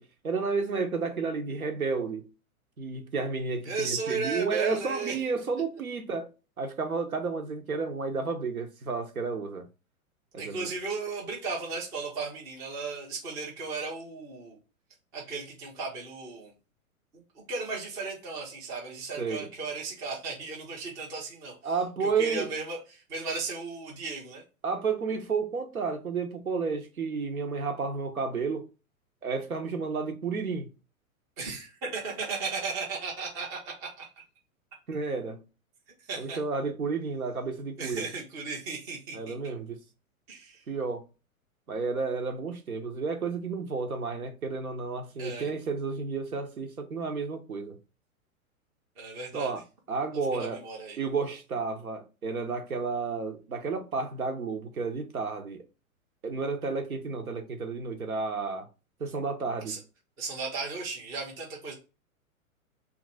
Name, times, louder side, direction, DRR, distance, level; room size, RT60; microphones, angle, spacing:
voice 1, 0.0-2.2 2.8-6.3 6.6-9.7 10.3-10.7 19.2-19.5 21.6-22.5 24.6-28.7 29.2-30.7 34.9-35.4 36.2-38.1 39.1-39.8 40.7-41.0 41.7-47.8 49.3-49.6 49.9-50.6 51.0-55.6 56.2-58.7 59.0-59.8, right 4 dB, 80° right, 0.9 m, -31 dB
voice 2, 3.7-5.2 10.4-14.6 15.1-16.5 17.1-21.7 22.0-24.4 31.4-34.1 36.1-36.4 37.8-39.3 40.3-40.6 45.2-45.5 49.0-49.5 50.3-51.0 59.7-59.8 60.2-61.7, right 4 dB, 10° right, 0.4 m, -35 dB
2.9 x 2.5 x 4.0 m
figure-of-eight pair, 105°, 42 cm